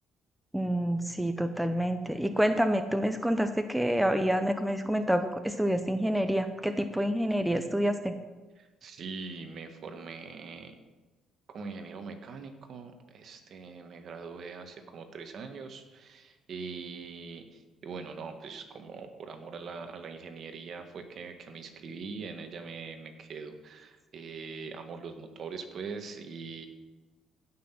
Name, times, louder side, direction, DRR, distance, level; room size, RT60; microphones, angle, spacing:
voice 1, 0.5-8.2, equal, 5° right, 8 dB, 0.7 m, -28 dB
voice 2, 8.6-10.7 11.5-26.7, right 4 dB, 55° right, 6 dB, 1.6 m, -42 dB
16.0 x 6.0 x 6.0 m, 1.2 s
cardioid pair, 95°, 0 cm